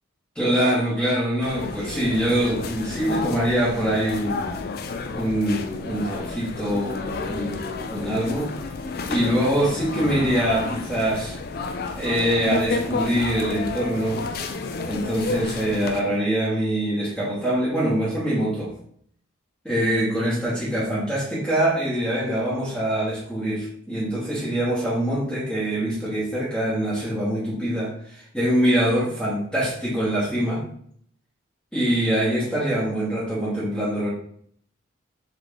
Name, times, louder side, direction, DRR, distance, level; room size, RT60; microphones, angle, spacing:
voice 1, 0.3-4.6 5.1-8.5 9.1-11.4 11.9-14.3 14.9-18.8 19.6-30.7 31.7-34.1, right 1 dB, 5° left, -8 dB, 1.0 m, -24 dB
sound 1, 1.4-16.0, left 4 dB, 45° left, 0.3 m, -31 dB
3.7 x 3.1 x 3.7 m, 0.62 s
head